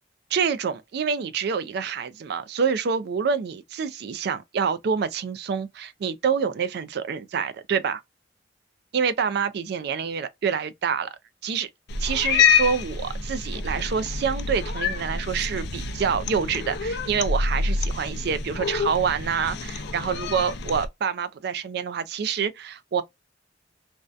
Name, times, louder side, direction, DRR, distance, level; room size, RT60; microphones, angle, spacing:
voice 1, 0.3-8.0 8.9-11.1 11.4-11.7 12.0-23.0, right 6 dB, 60° right, 0.3 m, -27 dB
Cat, 11.9-20.9, left 5 dB, 60° left, 0.4 m, -27 dB
2.5 x 2.2 x 2.3 m
head